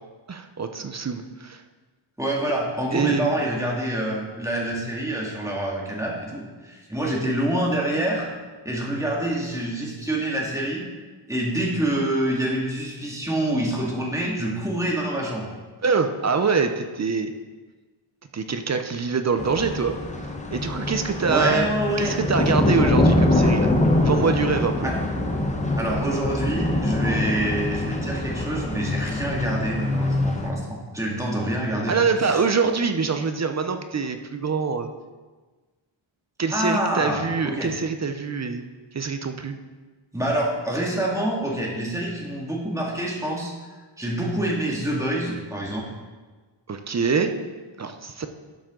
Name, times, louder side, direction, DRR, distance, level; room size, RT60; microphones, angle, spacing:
voice 1, 0.3-1.6 2.9-3.3 15.8-17.3 18.3-20.0 20.5-21.7 22.0-23.7 24.0-24.9 31.9-34.9 36.4-38.6 38.9-39.6 46.7-47.3 47.8-48.3, right 5 dB, 35° right, 7 dB, 0.6 m, -24 dB
voice 2, 2.2-8.3 8.6-10.8 11.3-15.5 21.3-22.2 24.8-24.9 25.8-32.0 32.2-32.4 36.5-37.7 40.1-43.5 44.0-45.9, right 1 dB, 5° right, -3 dB, 2.1 m, -26 dB
sound 1, 19.4-30.5, left 1 dB, 15° left, 0.9 m, -24 dB
12.0 x 7.3 x 3.8 m, 1.3 s
wide cardioid pair, 135°, 49 cm